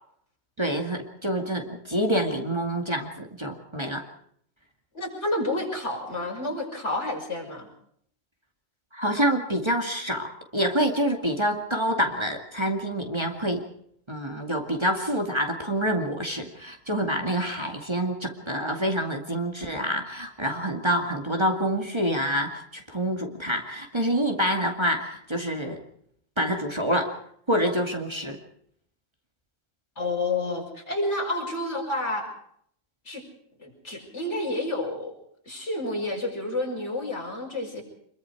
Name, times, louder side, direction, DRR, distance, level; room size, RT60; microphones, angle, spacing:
voice 1, 0.6-4.1 8.9-13.6 14.1-25.8 26.4-27.1 27.5-28.4, equal, 20° right, 2 dB, 2.3 m, -27 dB
voice 2, 4.9-7.7 30.0-32.2 33.1-33.2 33.6-35.1 35.5-37.8, left 2 dB, 60° left, 1 dB, 6.0 m, -29 dB
25.0 x 23.0 x 4.8 m, 0.66 s
omnidirectional pair, 1.4 m